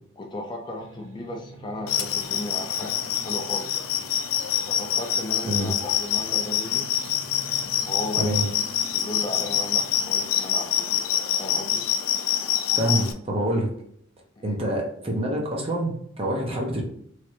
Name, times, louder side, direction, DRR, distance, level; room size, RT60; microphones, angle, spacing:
voice 1, 0.2-3.7 4.7-7.0 7.8-8.5 8.9-11.0 11.3-11.8 14.4-14.6, left 1 dB, 20° left, 1 dB, 0.4 m, -35 dB
sound 1, 0.8-10.2, right 3 dB, 80° right, 0.5 m, -47 dB
sound 2, 1.9-13.1, left 9 dB, 90° left, 0.4 m, -26 dB
voice 2, 12.7-13.7 14.4-16.8, right 1 dB, 30° right, 0 dB, 0.7 m, -26 dB
3.2 x 2.5 x 2.7 m, 0.68 s
head